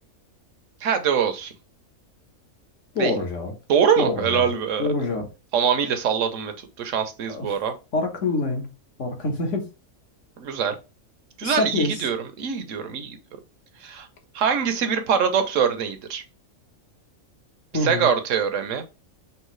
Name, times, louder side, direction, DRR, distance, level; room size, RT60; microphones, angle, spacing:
voice 1, 0.8-1.5 3.0-3.2 3.7-4.9 5.5-6.5 6.8-7.7 10.4-10.8 11.4-13.2 13.8-14.1 14.3-16.2 17.8-18.8, right 7 dB, 65° right, 1.1 m, -23 dB
voice 2, 2.9-3.5 4.0-4.5 4.8-5.3 7.3-7.5 7.9-8.7 9.0-9.7 11.4-12.0 17.7-18.1, left 2 dB, 60° left, 1.5 m, -26 dB
5.5 x 2.9 x 3.1 m
omnidirectional pair, 1.5 m